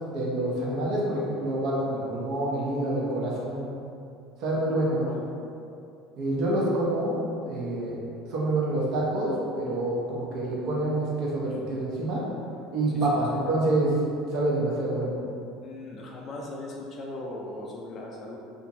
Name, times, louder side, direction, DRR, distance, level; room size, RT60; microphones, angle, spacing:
voice 1, 0.1-3.7 4.4-5.0 6.2-7.2 7.4-7.9 8.3-12.2 12.7-13.9 14.3-15.2, right 1 dB, 50° right, -5 dB, 0.6 m, -27 dB
voice 2, 4.5-5.3 12.9-13.1 15.6-18.4, left 2 dB, 30° left, -2 dB, 0.3 m, -39 dB
2.8 x 2.5 x 2.5 m, 2.6 s
cardioid pair, 165°, 0 cm